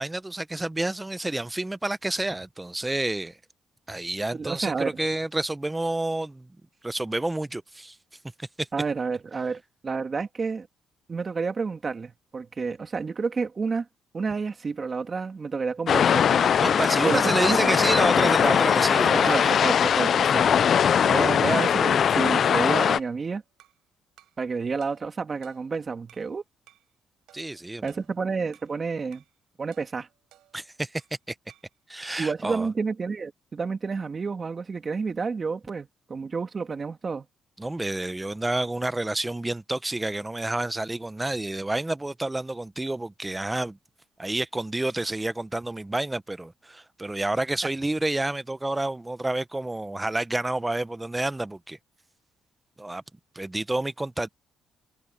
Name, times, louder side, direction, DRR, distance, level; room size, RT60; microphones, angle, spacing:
voice 1, 0.0-3.4 3.9-6.5 6.8-8.0 8.4-8.7 16.6-19.6 27.3-27.8 30.5-31.0 31.3-31.4 31.9-32.7 37.6-43.8 44.2-51.8 52.8-53.0 53.3-54.3, right 2 dB, 15° right, 0.8 m, -29 dB
voice 2, 4.3-5.0 8.7-10.7 11.1-13.9 14.1-16.5 17.0-17.7 19.1-20.5 21.0-23.4 24.4-26.4 27.8-29.2 29.6-30.1 32.2-37.3, right 4 dB, 35° right, 2.6 m, -30 dB
sound 1, 15.9-23.0, left 8 dB, 55° left, 0.3 m, -21 dB
sound 2, 22.9-23.9 24.2-24.5 24.8-26.3 26.7-26.9 27.3-28.8 29.1-29.4 29.7-31.2 31.5-31.8, right 14 dB, 85° right, 6.8 m, -59 dB
cardioid pair, 90°, 0 cm